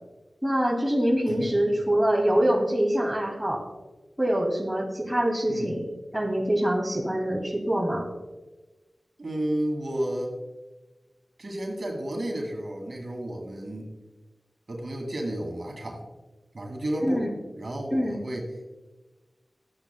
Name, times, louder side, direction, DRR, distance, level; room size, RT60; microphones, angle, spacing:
voice 1, 0.4-3.6 4.2-8.1 17.0-17.3 17.9-18.2, equal, 10° right, -1 dB, 2.3 m, -25 dB
voice 2, 9.2-10.3 11.4-13.9 14.7-16.0 16.5-17.3 17.6-18.4, right 1 dB, 55° right, 0 dB, 2.2 m, -32 dB
13.5 x 8.8 x 2.2 m, 1.2 s
cardioid pair, 50°, 0 cm